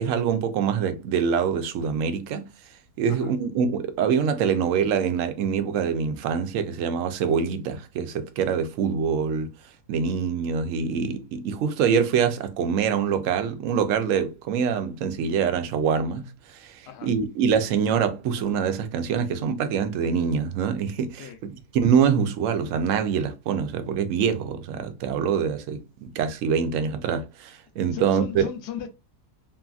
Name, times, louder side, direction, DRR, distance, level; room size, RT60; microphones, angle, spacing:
voice 1, 0.0-2.5 3.0-9.5 9.9-21.3 21.7-28.5, right 7 dB, 70° right, 0.8 m, -25 dB
voice 2, 27.9-28.9, left 9 dB, 85° left, 1.2 m, -36 dB
3.2 x 2.4 x 2.3 m
omnidirectional pair, 1.7 m